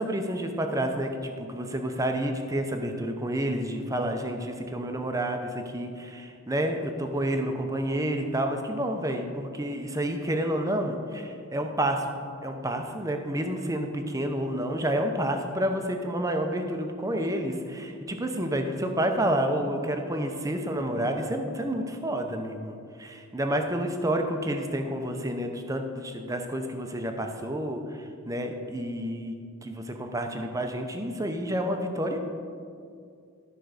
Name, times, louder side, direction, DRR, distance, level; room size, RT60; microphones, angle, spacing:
voice 1, 0.0-12.1 12.4-29.3 29.6-32.2, right 1 dB, 15° right, 4 dB, 0.7 m, -29 dB
12.5 x 4.6 x 6.6 m, 2.3 s
head